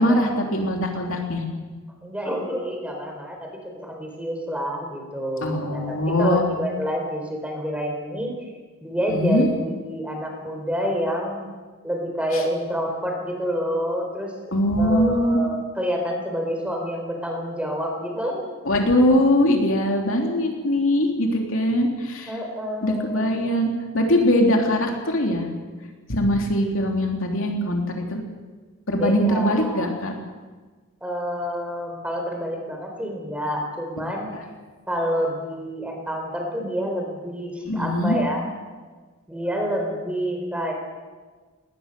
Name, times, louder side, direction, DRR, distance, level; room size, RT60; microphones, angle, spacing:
voice 1, 0.0-1.4 5.4-6.4 9.1-9.5 12.3-12.4 14.5-15.4 18.6-22.3 22.8-25.5 26.1-28.2 28.9-30.1 34.3-34.4 37.6-38.2, left 1 dB, 65° left, 1 dB, 3.2 m, -21 dB
voice 2, 2.0-5.8 6.2-8.3 8.8-11.4 11.8-14.3 14.8-18.4 22.3-23.6 29.0-29.9 31.0-34.3 34.9-38.4 39.3-40.7, equal, 5° right, 1 dB, 4.2 m, -28 dB
20.5 x 19.0 x 6.8 m, 1.4 s
head